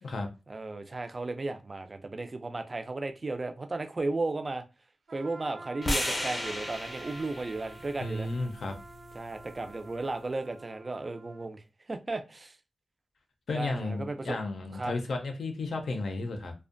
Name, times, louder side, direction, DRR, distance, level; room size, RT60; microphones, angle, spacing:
voice 1, 0.5-4.6 5.1-8.3 9.1-11.6 11.9-12.6 13.5-14.4 14.7-14.9, right 2 dB, 30° right, 0.3 m, -35 dB
Trumpet, 5.1-11.5, right 3 dB, 75° right, 1.0 m, -49 dB
sound 1, 5.8-10.0, left 1 dB, 35° left, 0.6 m, -36 dB
voice 2, 8.0-8.8 13.5-16.5, left 2 dB, 75° left, 0.4 m, -33 dB
2.5 x 2.1 x 2.5 m
wide cardioid pair, 150°, 0 cm